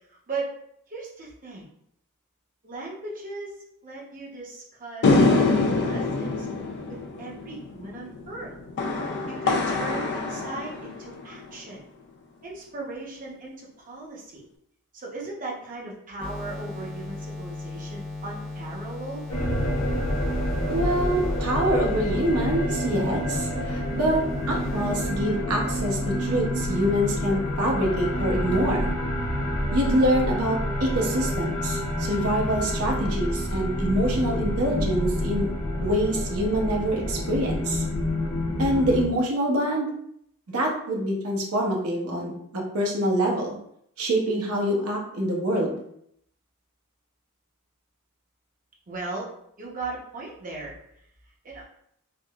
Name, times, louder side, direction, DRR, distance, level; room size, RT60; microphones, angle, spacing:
voice 1, 0.9-1.7 2.6-6.5 6.9-8.5 9.3-11.8 12.4-14.4 14.9-19.3 48.9-49.3 49.6-50.8 51.4-51.6, right 3 dB, 40° right, -4 dB, 0.7 m, -37 dB
sound 1, 5.0-11.5, left 3 dB, 50° left, 0.3 m, -25 dB
sound 2, 16.2-26.1, left 2 dB, 5° left, 0.7 m, -37 dB
sound 3, 19.3-39.1, left 1 dB, 70° left, 0.8 m, -28 dB
voice 2, 20.7-28.9 29.7-35.5 35.8-37.8 38.6-39.9 40.5-43.6 44.0-45.8, right 1 dB, 70° right, -1 dB, 0.7 m, -25 dB
3.5 x 2.0 x 2.3 m, 0.72 s
head